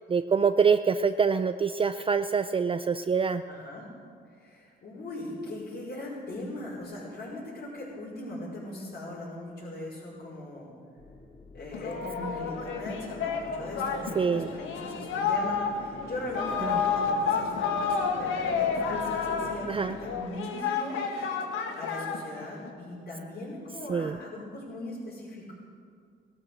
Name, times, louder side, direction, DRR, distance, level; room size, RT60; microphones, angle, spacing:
voice 1, 0.1-3.4 14.2-14.6 16.7-16.8 19.7-19.9 23.9-24.2, right 6 dB, 25° right, 10 dB, 0.5 m, -25 dB
voice 2, 3.5-3.9 4.3-10.7 11.5-21.0 21.7-25.5, left 1 dB, 55° left, -8 dB, 5.3 m, -39 dB
sound 1, 11.0-20.2, left 2 dB, 25° left, 2.3 m, -48 dB
Singing, 11.7-22.7, left 5 dB, 80° left, 1.7 m, -30 dB
17.0 x 12.5 x 6.4 m, 2.2 s
cardioid pair, 90°, 20 cm